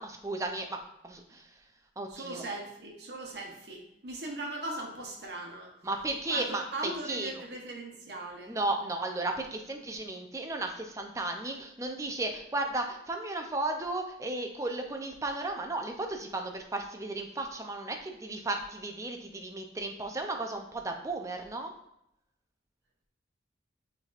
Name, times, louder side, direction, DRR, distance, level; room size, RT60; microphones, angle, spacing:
voice 1, 0.0-1.5 2.0-2.4 5.8-7.4 8.5-21.7, right 2 dB, 15° right, 4 dB, 0.4 m, -34 dB
voice 2, 2.1-5.7 6.3-8.5, right 2 dB, 65° right, 0 dB, 1.0 m, -39 dB
6.3 x 3.3 x 2.4 m, 0.81 s
head